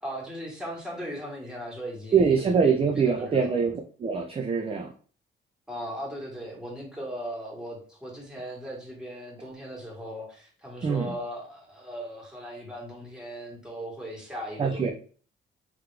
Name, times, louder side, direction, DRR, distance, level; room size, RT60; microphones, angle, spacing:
voice 1, 0.0-3.5 5.7-14.9, equal, 5° right, -3 dB, 1.9 m, -38 dB
voice 2, 2.1-4.9 10.8-11.1 14.6-14.9, right 5 dB, 30° right, 3 dB, 0.5 m, -24 dB
3.9 x 3.0 x 3.4 m, 0.42 s
cardioid pair, 90°, 20 cm